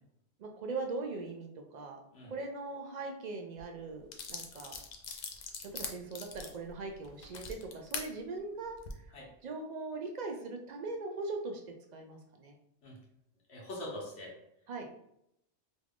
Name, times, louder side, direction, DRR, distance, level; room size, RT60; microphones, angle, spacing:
voice 1, 0.4-4.8 5.6-8.8 9.4-11.6 11.9-12.6 14.7-14.9, right 3 dB, 55° right, 3 dB, 0.5 m, -40 dB
sound 1, 3.6-3.7 4.1-8.1 8.7-8.9, left 5 dB, 60° left, 0.5 m, -42 dB
voice 2, 13.5-14.3, left 1 dB, 85° left, -2 dB, 1.3 m, -43 dB
3.1 x 2.4 x 3.4 m, 0.77 s
omnidirectional pair, 1.2 m